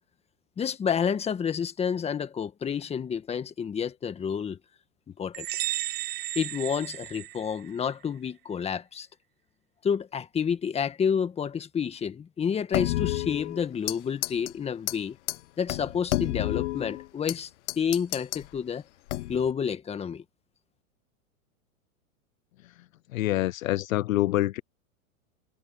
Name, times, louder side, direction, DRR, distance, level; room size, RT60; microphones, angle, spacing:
voice 1, 0.6-4.6 5.1-5.5 6.4-9.1 9.8-15.2 15.6-17.5 17.8-18.8 19.3-20.2, left 7 dB, 15° left, 1.7 m, -29 dB
sound 1, 5.3-7.9, right 16 dB, 25° right, 0.9 m, -34 dB
sound 2, 12.7-14.0 14.2-14.5 14.9-15.0 15.3-15.4 15.7-17.4 17.7-18.4 19.1-19.5, left 17 dB, 55° left, 1.3 m, -30 dB
voice 2, 23.1-24.6, left 16 dB, 75° left, 0.6 m, -26 dB
hypercardioid pair, 135°, 41 cm